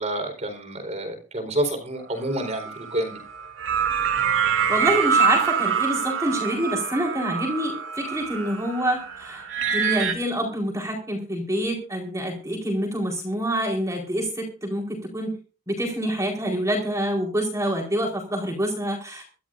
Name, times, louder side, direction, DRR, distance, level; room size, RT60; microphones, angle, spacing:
voice 1, 0.0-3.2, right 1 dB, 35° right, 5 dB, 4.4 m, -28 dB
sound 1, 2.3-10.1, right 6 dB, 75° right, 2.6 m, -25 dB
voice 2, 4.7-9.4 9.7-15.3 15.7-19.2, equal, 15° right, 2 dB, 4.3 m, -26 dB
24.5 x 13.0 x 2.6 m, 0.34 s
head